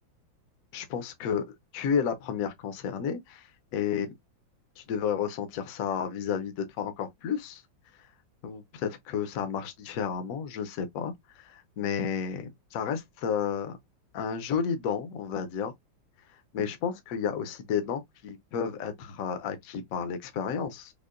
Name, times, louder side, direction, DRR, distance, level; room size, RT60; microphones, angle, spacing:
voice 1, 0.7-3.4 3.7-4.1 4.8-7.6 8.4-13.8 14.1-15.7 16.5-20.9, left 7 dB, 65° left, 0.9 m, -32 dB
5.4 x 2.1 x 2.5 m
omnidirectional pair, 2.2 m